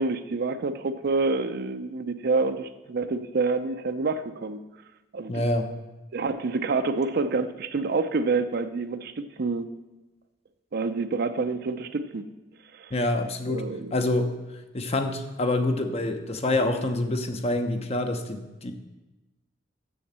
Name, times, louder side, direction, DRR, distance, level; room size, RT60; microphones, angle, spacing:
voice 1, 0.0-4.6 5.1-5.4 6.1-9.7 10.7-12.2 12.7-12.9 13.5-13.9, right 3 dB, 55° right, 10 dB, 0.5 m, -27 dB
voice 2, 5.3-5.7 12.9-13.6 13.9-14.3 14.7-18.7, left 2 dB, 35° left, 7 dB, 0.8 m, -26 dB
7.1 x 6.5 x 7.3 m, 1.1 s
head